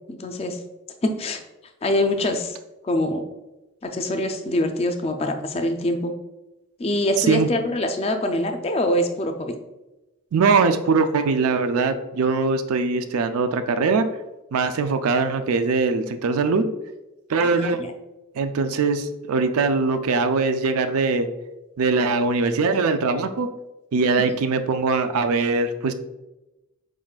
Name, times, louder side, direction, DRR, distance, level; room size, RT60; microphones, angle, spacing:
voice 1, 0.1-0.6 1.0-1.4 1.8-2.6 2.8-3.2 3.8-6.1 6.8-9.5 17.4-17.9, left 1 dB, 25° left, 5 dB, 0.4 m, -24 dB
voice 2, 7.2-7.5 10.3-14.0 14.5-16.6 17.3-17.8 18.4-21.3 21.8-23.5 23.9-25.9, right 4 dB, 85° right, 9 dB, 0.4 m, -21 dB
5.0 x 3.7 x 2.4 m, 1.0 s
head